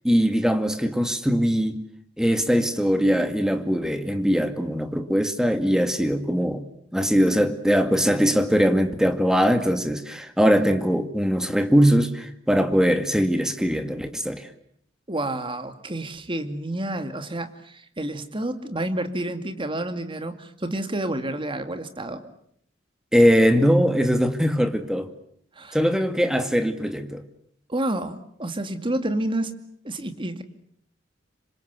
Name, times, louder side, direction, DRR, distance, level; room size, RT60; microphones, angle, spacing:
voice 1, 0.0-1.9 2.2-6.6 6.9-14.5 23.1-25.1 25.7-27.2, equal, 5° right, 2.2 m, -21 dB
voice 2, 15.1-22.3 25.5-25.8 27.7-29.5 29.8-30.4, right 1 dB, 30° right, 2.4 m, -29 dB
27.0 x 25.5 x 8.3 m
head